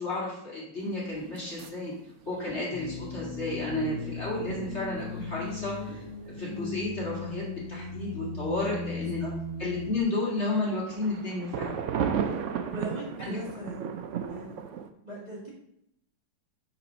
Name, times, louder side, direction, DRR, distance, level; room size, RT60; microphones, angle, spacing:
voice 1, 0.0-1.9 2.3-6.0 6.4-9.2 9.6-11.8 13.2-13.4, left 2 dB, 35° left, -5 dB, 2.0 m, -32 dB
sound 1, 0.8-6.7 10.4-14.9, right 7 dB, 80° right, 0.6 m, -36 dB
sound 2, 2.7-10.0, left 4 dB, 90° left, 1.7 m, -37 dB
voice 2, 9.0-9.3 12.7-13.9 14.3-14.6 15.0-15.5, right 1 dB, 20° right, -6 dB, 1.9 m, -39 dB
6.0 x 4.1 x 6.1 m, 0.77 s
omnidirectional pair, 2.1 m